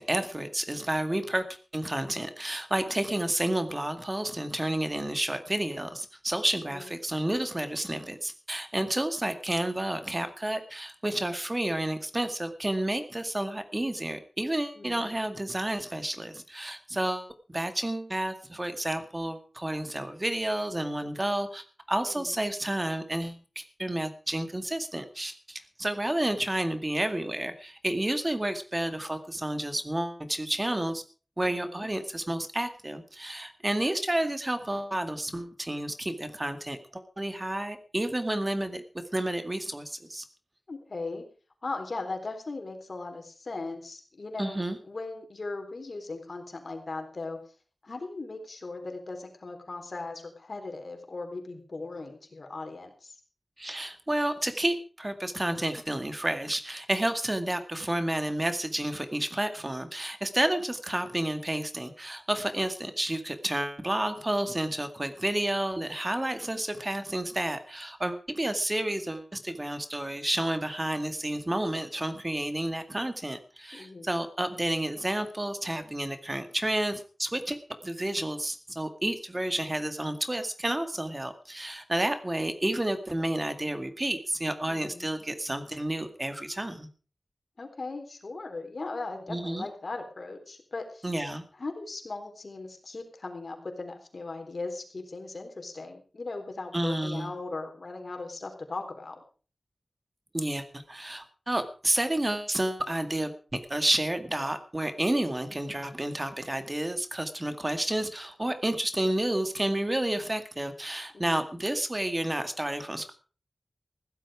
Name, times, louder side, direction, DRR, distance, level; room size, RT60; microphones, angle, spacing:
voice 1, 0.0-1.4 1.7-31.0 31.4-38.8 39.1-40.2 44.4-44.8 53.6-86.9 89.3-89.7 91.0-91.4 96.7-97.3 100.3-113.1, right 1 dB, 30° right, 9 dB, 2.0 m, -30 dB
voice 2, 6.7-7.0 14.8-15.2 22.1-22.4 31.4-31.9 40.7-41.2 41.6-44.6 44.8-47.4 47.8-53.2 73.7-74.2 84.7-85.1 87.6-91.1 91.6-99.2 111.1-111.5, left 3 dB, 65° left, 5 dB, 3.7 m, -38 dB
16.0 x 12.0 x 4.9 m, 0.38 s
wide cardioid pair, 50°, 0 cm